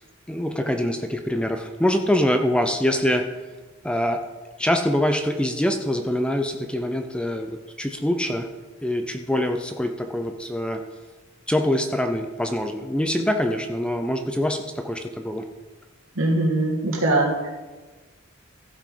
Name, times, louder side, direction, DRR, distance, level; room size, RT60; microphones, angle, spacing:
voice 1, 0.3-3.2 3.8-4.2 4.6-8.5 8.8-10.8 11.5-15.4, left 1 dB, 5° left, 6 dB, 0.5 m, -24 dB
voice 2, 16.2-17.5, right 2 dB, 80° right, -3 dB, 2.6 m, -22 dB
15.0 x 5.7 x 5.0 m, 1.3 s
head